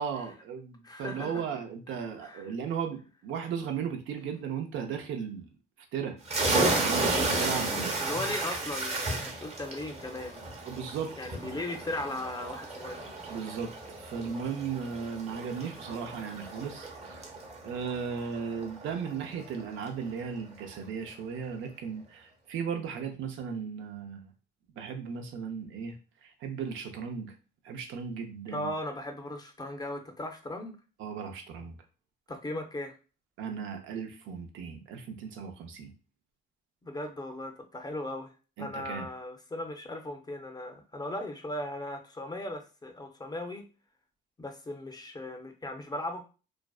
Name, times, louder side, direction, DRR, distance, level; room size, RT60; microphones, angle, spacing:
voice 1, 0.0-5.5 5.9-6.2 6.7-8.0 10.7-11.6 13.3-13.7 14.0-17.3 17.6-24.3 24.8-25.9 26.2-27.3 27.6-28.7 31.0-31.7 33.4-35.9 38.6-39.1, right 6 dB, 80° right, 5 dB, 0.5 m, -36 dB
voice 2, 0.8-1.5 2.2-2.5 8.0-10.4 11.2-13.1 28.5-30.7 32.3-32.9 36.8-38.3 38.6-43.6 44.4-46.2, left 1 dB, 20° left, 4 dB, 0.5 m, -37 dB
sound 1, 6.2-19.6, right 2 dB, 35° right, 0.8 m, -33 dB
2.5 x 2.1 x 2.3 m, 0.34 s
cardioid pair, 90°, 20 cm